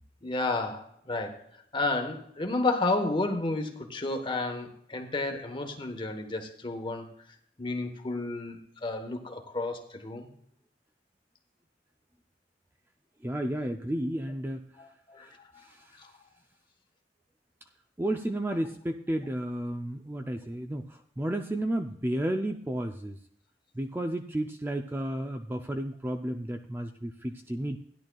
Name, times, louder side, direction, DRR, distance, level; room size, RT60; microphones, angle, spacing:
voice 1, 0.2-1.4 1.7-7.1 7.6-10.3 14.8-15.3 15.5-15.7 16.0-16.1, left 2 dB, 25° left, 5 dB, 1.2 m, -31 dB
voice 2, 13.2-14.6 15.2-15.3 18.0-20.9 21.2-23.2 23.8-27.8, right 1 dB, 10° right, 5 dB, 0.4 m, -32 dB
16.0 x 10.5 x 2.3 m, 0.68 s
head